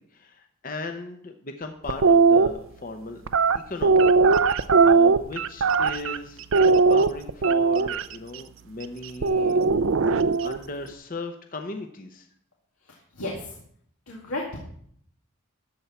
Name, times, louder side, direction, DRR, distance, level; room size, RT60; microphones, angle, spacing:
voice 1, 0.0-3.2 3.7-9.6 10.4-12.3, left 3 dB, 40° left, 5 dB, 0.8 m, -37 dB
sound 1, 1.9-2.5 3.3-6.2 6.5-8.0 9.2-10.6, right 4 dB, 65° right, 0.5 m, -19 dB
voice 2, 12.9-13.6 14.1-14.6, left 1 dB, 90° left, -3 dB, 2.2 m, -34 dB
13.5 x 4.5 x 8.2 m, 0.65 s
head